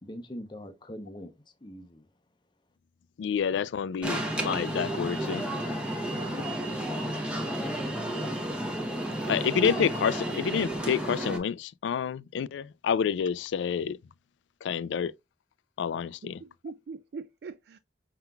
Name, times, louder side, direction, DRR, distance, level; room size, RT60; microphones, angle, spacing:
voice 1, 0.0-2.1, equal, 25° left, 0.7 m, -42 dB
voice 2, 3.2-5.4 9.3-14.0 14.6-15.1 15.8-16.4, left 7 dB, 90° left, 0.3 m, -28 dB
Alarm, 4.0-11.4, right 1 dB, 5° right, 0.8 m, -32 dB
voice 3, 6.0-6.8 16.2-17.8, right 4 dB, 60° right, 0.3 m, -44 dB
5.6 x 3.8 x 2.2 m
head